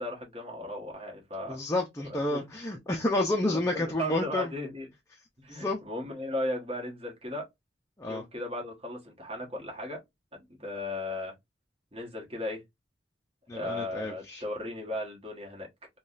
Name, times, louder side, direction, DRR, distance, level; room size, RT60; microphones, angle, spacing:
voice 1, 0.0-1.6 2.0-2.4 3.4-4.9 5.4-7.5 8.1-10.0 10.3-11.3 11.9-12.6 13.5-15.7, left 1 dB, 30° right, 1.2 m, -36 dB
voice 2, 1.5-4.5 5.5-5.8 8.0-8.2 13.5-14.4, left 1 dB, 15° left, 0.4 m, -30 dB
3.5 x 2.3 x 2.4 m
head